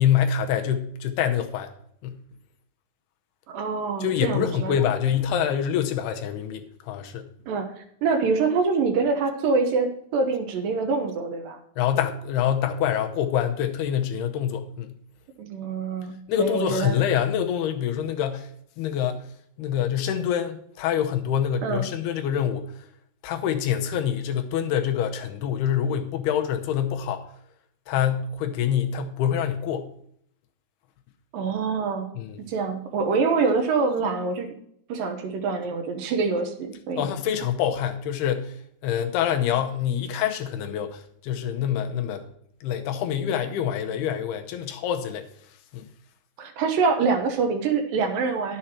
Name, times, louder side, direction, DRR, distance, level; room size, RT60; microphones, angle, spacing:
voice 1, 0.0-1.7 2.0-2.2 4.0-7.3 11.8-15.0 16.3-18.5 18.8-19.2 19.6-22.9 23.2-27.3 27.9-29.9 32.2-32.4 37.0-38.6 38.8-42.2 42.6-45.3 45.7-45.9, left 9 dB, 80° left, 2.9 m, -26 dB
voice 2, 3.5-4.7 7.5-11.6 15.4-17.0 21.6-21.8 31.3-32.1 32.4-34.5 34.9-37.1 46.4-48.6, right 4 dB, 70° right, 2.5 m, -25 dB
11.0 x 7.8 x 4.3 m
omnidirectional pair, 4.5 m